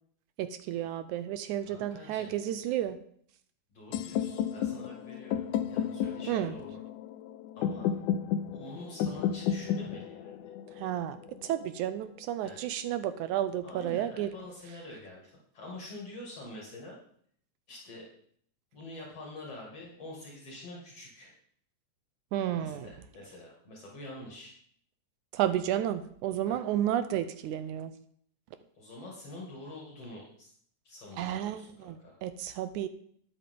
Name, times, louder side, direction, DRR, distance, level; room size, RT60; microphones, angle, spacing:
voice 1, 0.4-3.0 6.3-6.6 10.8-14.3 22.3-22.9 25.3-27.9 31.2-32.9, right 11 dB, 80° right, 11 dB, 1.9 m, -32 dB
voice 2, 1.6-2.4 3.7-5.4 5.7-6.8 7.6-7.9 8.5-10.5 12.4-12.6 13.6-17.0 17.7-18.1 18.7-21.3 22.6-24.5 26.5-26.6 28.7-30.5 30.8-32.2, left 1 dB, 50° left, -3 dB, 3.3 m, -46 dB
sound 1, 3.9-11.9, left 9 dB, 80° left, 2.0 m, -33 dB
12.0 x 10.0 x 3.8 m, 0.63 s
omnidirectional pair, 3.7 m